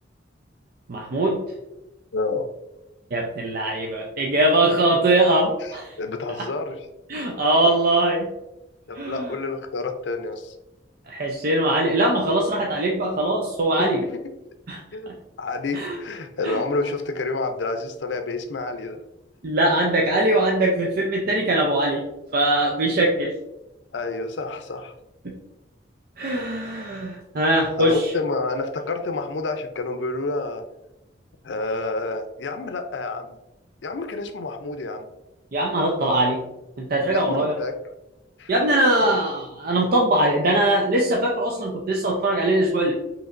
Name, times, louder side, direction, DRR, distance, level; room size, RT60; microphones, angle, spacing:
voice 1, 0.9-1.4 3.1-5.9 6.3-6.4 7.1-8.3 8.9-9.3 11.1-14.0 14.7-15.2 15.7-16.0 16.4-16.6 19.4-22.1 22.3-23.3 25.2-25.3 26.2-28.1 35.5-36.4 36.8-37.6 38.5-42.9, right 1 dB, 55° right, -1 dB, 0.5 m, -21 dB
voice 2, 2.1-2.5 5.6-6.8 7.1-7.3 7.6-7.7 8.9-10.6 14.9-15.1 15.4-19.0 23.9-24.9 27.8-30.6 31.4-33.4 33.8-35.1 37.1-37.8 38.4-38.5 39.0-39.2, left 3 dB, 80° left, 7 dB, 0.5 m, -29 dB
5.0 x 3.2 x 2.5 m, 0.93 s
head